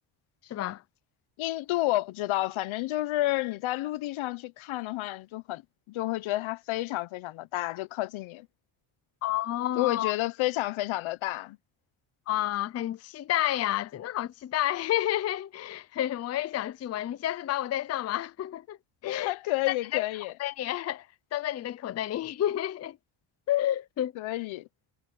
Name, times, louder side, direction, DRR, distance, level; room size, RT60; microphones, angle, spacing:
voice 1, 0.5-0.8 9.2-10.1 12.3-18.8 19.0-19.3 19.7-20.1 20.4-21.1 21.3-23.0 23.5-24.1, left 13 dB, 35° left, 0.5 m, -30 dB
voice 2, 1.4-5.6 5.9-8.5 9.8-11.6 19.0-20.3 24.2-24.7, left 17 dB, 80° left, 1.0 m, -30 dB
cardioid pair, 145°, 47 cm